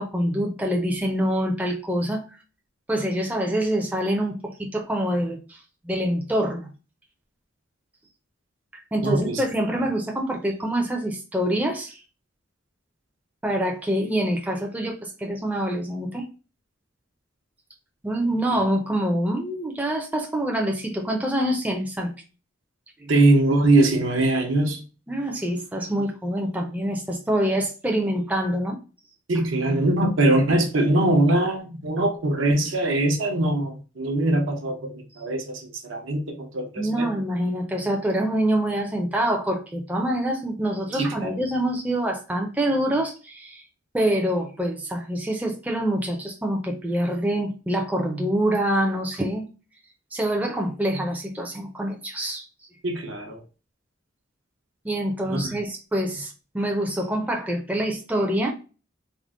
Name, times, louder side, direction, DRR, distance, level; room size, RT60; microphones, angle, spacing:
voice 1, 0.0-2.2 2.9-5.6 5.8-6.7 8.9-12.0 13.4-16.3 18.0-22.1 23.0-23.1 25.1-28.8 36.8-43.6 43.9-49.5 50.1-52.4 54.8-58.5, right 1 dB, 10° right, 0.4 m, -25 dB
voice 2, 9.0-9.4 23.1-24.8 29.3-37.1 40.9-41.4 52.8-53.4 55.3-55.5, right 2 dB, 80° right, 0.8 m, -22 dB
3.6 x 2.1 x 3.5 m
head